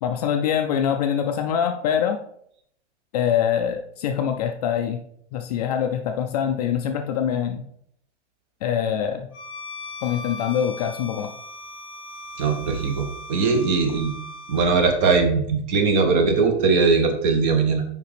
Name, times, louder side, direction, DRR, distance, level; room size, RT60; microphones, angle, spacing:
voice 1, 0.0-2.2 3.1-5.0 5.3-7.6 8.6-9.3 10.0-11.3, left 8 dB, 35° left, 5 dB, 0.4 m, -24 dB
Bowed string instrument, 9.3-14.7, left 1 dB, 15° left, 1.2 m, -38 dB
voice 2, 12.4-14.1 14.5-17.8, right 4 dB, 40° right, 5 dB, 1.2 m, -20 dB
6.6 x 5.1 x 3.4 m, 0.69 s
hypercardioid pair, 140°, 36 cm